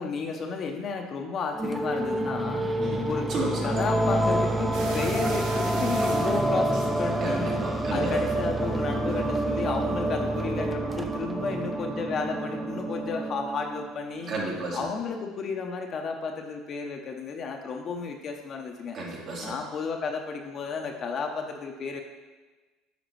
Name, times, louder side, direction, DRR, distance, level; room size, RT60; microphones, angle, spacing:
voice 1, 0.0-2.7 3.0-3.3 3.6-7.6 7.9-14.3 14.7-19.0 19.4-22.0, left 4 dB, 40° left, 3 dB, 0.7 m, -32 dB
sound 1, 1.5-14.5, right 1 dB, 10° right, 0.6 m, -28 dB
voice 2, 2.8-3.7 5.7-5.9 7.2-8.2 14.3-14.8 18.9-19.5, right 2 dB, 50° right, -2 dB, 1.9 m, -32 dB
sound 2, 4.7-7.6 8.0-8.4 9.1-9.2 9.6-9.7, right 3 dB, 80° right, 1.1 m, -41 dB
9.1 x 5.1 x 3.2 m, 1.3 s
cardioid pair, 120°, 0 cm